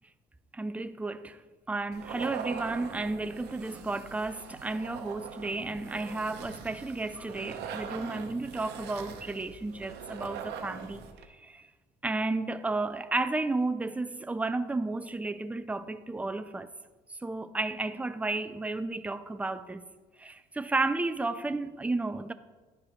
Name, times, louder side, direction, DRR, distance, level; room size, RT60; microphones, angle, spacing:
voice 1, 0.5-1.4 1.7-11.6 12.0-16.7 17.2-19.9 20.2-22.3, right 2 dB, 10° right, 0.4 m, -32 dB
sound 1, 1.9-11.2, right 7 dB, 80° right, 0.8 m, -42 dB
10.0 x 4.7 x 5.0 m
cardioid pair, 110°, 17 cm